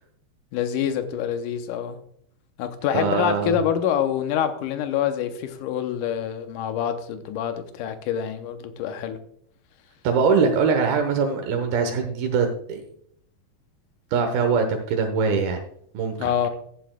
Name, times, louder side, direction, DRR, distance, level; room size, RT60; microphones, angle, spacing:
voice 1, 0.5-2.0 2.6-9.2 16.2-16.5, left 9 dB, 75° left, 2.0 m, -26 dB
voice 2, 2.9-3.6 10.0-12.8 14.1-15.6 15.9-16.3, right 5 dB, 80° right, 2.9 m, -22 dB
15.5 x 8.4 x 2.2 m
omnidirectional pair, 4.2 m